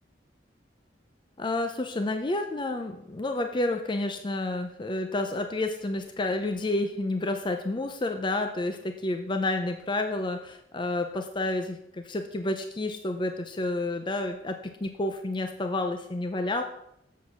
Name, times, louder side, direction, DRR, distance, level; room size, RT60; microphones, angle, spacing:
voice 1, 1.4-16.6, left 2 dB, 25° left, 5 dB, 0.6 m, -30 dB
7.3 x 6.5 x 5.9 m, 0.76 s
head